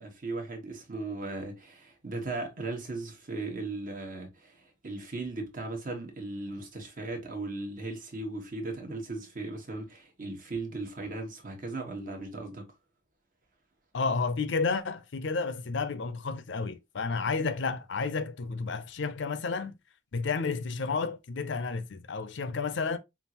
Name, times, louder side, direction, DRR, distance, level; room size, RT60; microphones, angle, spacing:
voice 1, 0.0-12.7, right 2 dB, 40° right, 1.1 m, -37 dB
voice 2, 13.9-19.8 20.1-23.0, left 4 dB, 60° left, 0.5 m, -31 dB
5.3 x 2.5 x 2.8 m
head